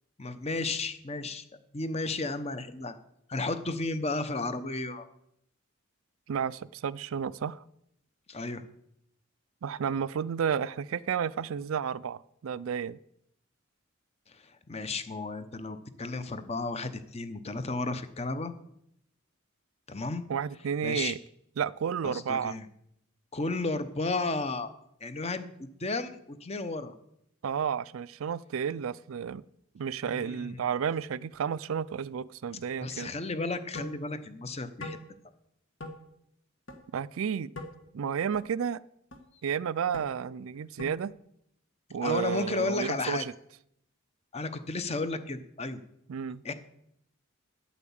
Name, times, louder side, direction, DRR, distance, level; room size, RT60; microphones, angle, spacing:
voice 1, 0.2-1.4 1.7-3.0 3.3-5.1 8.3-8.6 14.3-18.5 19.9-20.2 20.8-21.1 22.0-22.7 23.3-24.7 25.0-26.9 30.1-30.6 32.8-35.0 42.0-43.2 44.3-45.8 46.4-46.5, left 3 dB, 30° left, 11 dB, 0.8 m, -33 dB
voice 2, 6.3-7.6 9.6-13.0 20.3-21.2 21.6-22.5 27.4-29.4 29.7-33.1 36.9-37.5 37.9-38.8 39.4-41.1 41.9-43.3 46.1-46.4, right 7 dB, 80° right, 20 dB, 0.4 m, -31 dB
sound 1, 33.8-34.0 34.8-35.0 35.8-36.0 36.7-36.8 37.6-37.7 38.3-38.4 39.1-39.2 39.9-40.1 40.8-41.0, left 1 dB, 60° left, 1.6 m, -40 dB
9.2 x 8.4 x 7.1 m, 0.76 s
head